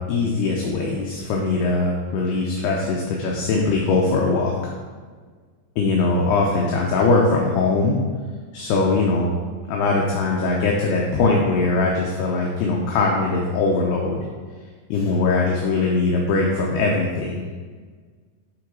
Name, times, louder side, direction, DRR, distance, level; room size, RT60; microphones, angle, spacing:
voice 1, 0.0-4.5 5.8-8.0 8.5-9.3 9.7-14.2 14.9-17.5, left 3 dB, 75° left, -1 dB, 2.6 m, -21 dB
11.5 x 4.0 x 4.7 m, 1.5 s
omnidirectional pair, 5.1 m